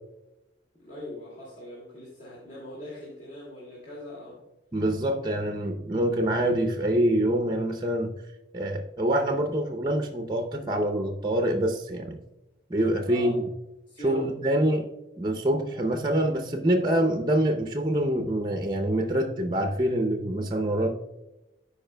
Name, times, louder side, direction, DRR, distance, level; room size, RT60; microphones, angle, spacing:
voice 1, 0.8-4.4 13.1-13.4 13.9-14.3, left 1 dB, 40° left, -7 dB, 2.2 m, -41 dB
voice 2, 4.7-8.2 8.5-12.2 12.7-13.4 14.0-14.9 15.2-20.9, right 1 dB, 25° right, 5 dB, 0.6 m, -25 dB
13.5 x 4.9 x 2.2 m, 0.95 s
head